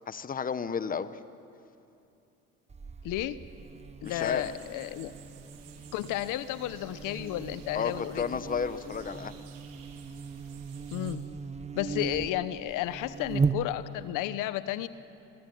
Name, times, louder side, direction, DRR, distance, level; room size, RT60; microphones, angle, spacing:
voice 1, 0.1-1.2 4.0-4.5 7.7-9.4, left 6 dB, 25° left, 13 dB, 1.1 m, -32 dB
Buzz, 2.7-14.1, right 5 dB, 20° right, 1.0 m, -37 dB
voice 2, 3.0-3.4 4.0-5.1 5.9-8.4 10.9-11.2 11.7-14.9, left 14 dB, 70° left, 14 dB, 1.1 m, -32 dB
sound 1, 4.0-11.2, right 7 dB, 70° right, 3.9 m, -54 dB
27.0 x 23.0 x 9.4 m, 2.7 s
supercardioid pair, 85°, 33 cm